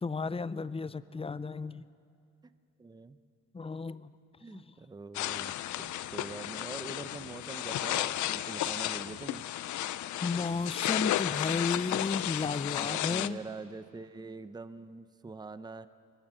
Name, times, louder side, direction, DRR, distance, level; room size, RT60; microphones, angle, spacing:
voice 1, 0.0-1.8 3.5-4.1 4.5-4.6 10.2-13.4, left 4 dB, 20° left, 16 dB, 0.6 m, -33 dB
voice 2, 2.8-3.2 4.4-9.4 12.8-15.9, right 3 dB, 15° right, 13 dB, 0.7 m, -44 dB
sound 1, 5.1-13.3, left 13 dB, 75° left, 0.6 m, -33 dB
24.0 x 21.5 x 6.3 m, 2.5 s
cardioid pair, 90°, 30 cm